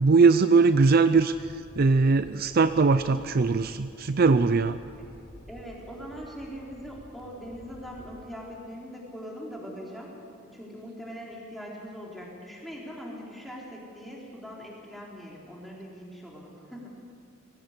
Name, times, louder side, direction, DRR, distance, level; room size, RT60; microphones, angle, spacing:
voice 1, 0.0-4.8, right 4 dB, 50° right, 12 dB, 0.5 m, -21 dB
sound 1, 1.3-8.3, equal, 50° left, 2.3 m, -50 dB
voice 2, 5.5-10.1 10.5-16.9, equal, ahead, -4 dB, 4.0 m, -41 dB
20.0 x 17.0 x 8.2 m, 2.4 s
head